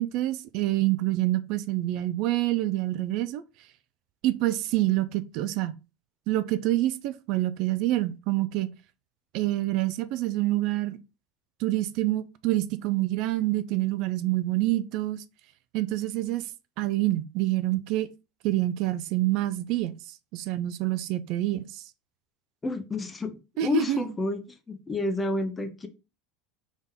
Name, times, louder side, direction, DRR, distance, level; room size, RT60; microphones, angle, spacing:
voice 1, 0.0-3.4 4.2-5.7 6.3-8.7 9.3-11.0 11.6-15.2 15.7-16.4 16.8-18.1 18.4-20.0 20.3-21.8 23.6-24.0, right 16 dB, 55° right, 0.4 m, -27 dB
voice 2, 22.6-25.9, left 2 dB, 15° left, 0.7 m, -30 dB
4.1 x 3.6 x 3.6 m
supercardioid pair, 120°, 0 cm